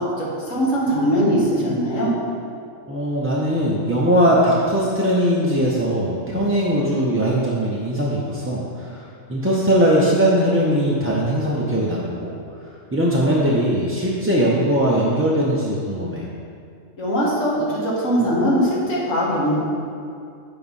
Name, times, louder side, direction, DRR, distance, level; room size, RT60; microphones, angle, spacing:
voice 1, 0.0-2.1 17.0-19.6, equal, 60° left, -5 dB, 2.0 m, -21 dB
voice 2, 2.9-9.0 9.3-12.3 12.9-16.2, equal, 15° right, -6 dB, 0.5 m, -20 dB
7.6 x 4.9 x 5.5 m, 2.4 s
omnidirectional pair, 1.5 m